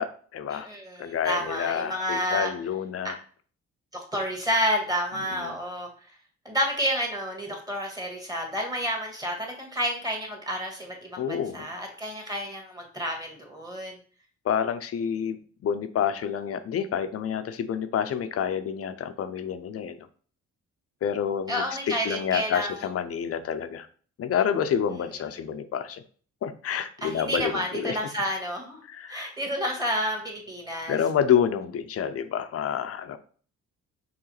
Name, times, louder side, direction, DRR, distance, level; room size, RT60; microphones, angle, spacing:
voice 1, 0.0-0.7 1.0-3.2 5.3-5.5 11.2-11.7 14.4-20.1 21.0-23.9 24.2-26.0 26.4-28.0 28.9-29.3 30.9-33.2, left 8 dB, 50° left, 10 dB, 0.6 m, -28 dB
voice 2, 0.5-2.5 3.9-6.1 6.4-14.0 21.5-22.7 27.0-28.8 29.1-31.0, equal, 10° right, 1 dB, 1.6 m, -30 dB
4.7 x 3.3 x 3.2 m, 0.44 s
cardioid pair, 90°, 30 cm